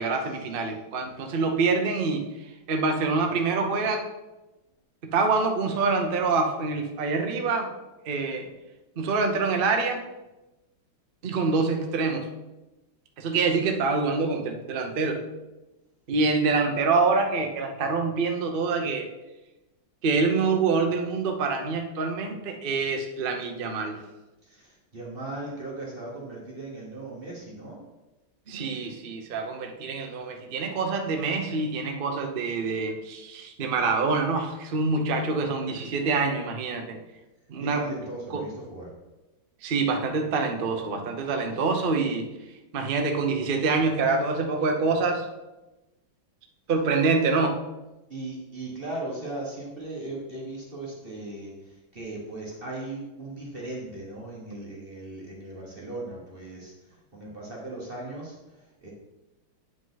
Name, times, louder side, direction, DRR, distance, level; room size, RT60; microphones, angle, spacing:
voice 1, 0.0-2.2 2.7-4.1 5.1-7.7 8.0-8.5 9.0-10.0 11.2-12.3 13.2-15.2 16.1-19.1 20.0-24.0 28.5-37.0 37.5-37.8 38.3-38.4 39.6-42.3 42.7-45.3 46.7-47.6, right 4 dB, 60° right, 4 dB, 0.5 m, -26 dB
voice 2, 24.4-27.8 37.6-38.9 48.1-56.7 57.1-58.9, right 2 dB, 30° right, -3 dB, 1.4 m, -38 dB
9.1 x 5.0 x 4.0 m, 1.0 s
omnidirectional pair, 2.2 m